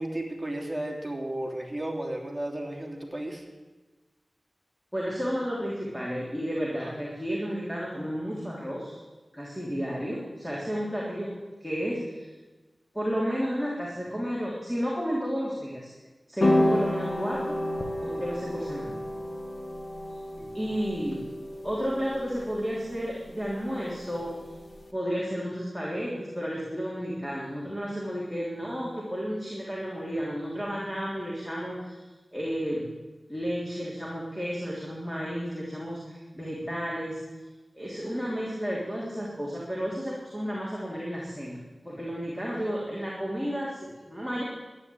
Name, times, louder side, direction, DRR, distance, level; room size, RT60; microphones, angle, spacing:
voice 1, 0.0-3.4 6.8-7.0 20.4-20.7, right 1 dB, 15° right, -1 dB, 3.3 m, -34 dB
voice 2, 4.9-9.0 9.3-11.3 11.6-12.3 12.9-15.9 16.3-17.6 18.0-19.0 20.5-21.3 21.6-24.3 24.9-32.0 32.3-32.8 33.3-37.2 37.7-41.6 41.8-44.4, equal, 5° left, -5 dB, 3.4 m, -32 dB
sound 1, 16.4-24.8, left 1 dB, 50° left, 1.8 m, -31 dB
12.0 x 10.5 x 8.7 m, 1.2 s
wide cardioid pair, 75°, 0 cm